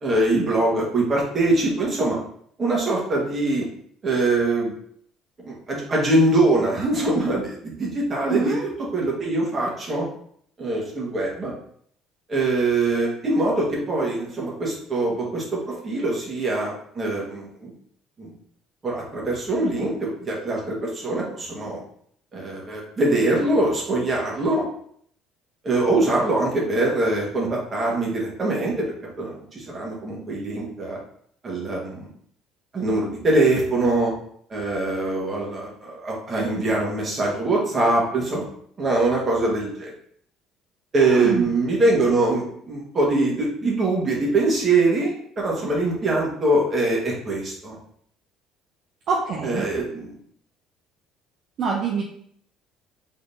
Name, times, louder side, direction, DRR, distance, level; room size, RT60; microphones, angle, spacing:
voice 1, 0.0-2.2 2.6-3.7 4.0-4.7 5.4-10.1 10.6-11.5 12.3-17.7 18.2-18.3 18.8-21.8 22.3-24.7 25.6-28.8 29.2-31.0 31.4-32.1 32.7-34.1 34.5-38.4 38.8-39.9 40.9-47.8 49.4-50.2, right 2 dB, 30° right, -3 dB, 1.4 m, -23 dB
voice 2, 8.2-8.7 41.0-41.4 49.1-49.7 51.6-52.0, right 5 dB, 55° right, -2 dB, 0.6 m, -25 dB
4.0 x 3.7 x 2.6 m, 0.64 s
cardioid pair, 125°, 0 cm